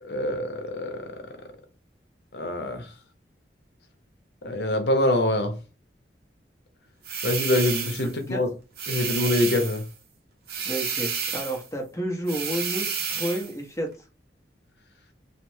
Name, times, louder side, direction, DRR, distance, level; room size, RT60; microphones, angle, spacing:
voice 1, 0.0-1.0 2.3-2.9 4.4-5.5 7.2-8.5 8.9-9.8, left 1 dB, 70° left, 0.7 m, -25 dB
sound 1, 7.0-8.1 8.8-9.9 10.5-11.7 12.3-13.5, right 6 dB, 55° right, 0.6 m, -30 dB
voice 2, 8.0-8.4 10.6-13.9, right 1 dB, 15° left, 0.7 m, -31 dB
3.2 x 2.0 x 3.1 m
head